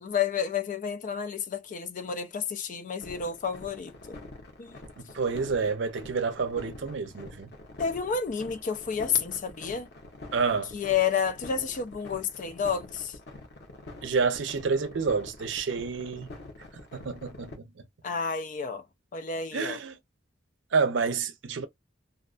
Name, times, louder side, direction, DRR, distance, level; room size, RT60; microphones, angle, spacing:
voice 1, 0.0-4.2 4.6-4.8 7.8-9.9 10.7-13.2 18.0-18.8 19.1-19.8, left 6 dB, 45° left, 0.4 m, -30 dB
sound 1, 3.0-17.5, left 2 dB, 60° left, 0.9 m, -45 dB
voice 2, 5.0-7.5 10.3-10.7 14.0-16.3 16.9-17.7 19.5-20.0 20.7-21.7, right 5 dB, 70° right, 0.5 m, -28 dB
2.4 x 2.2 x 2.4 m
head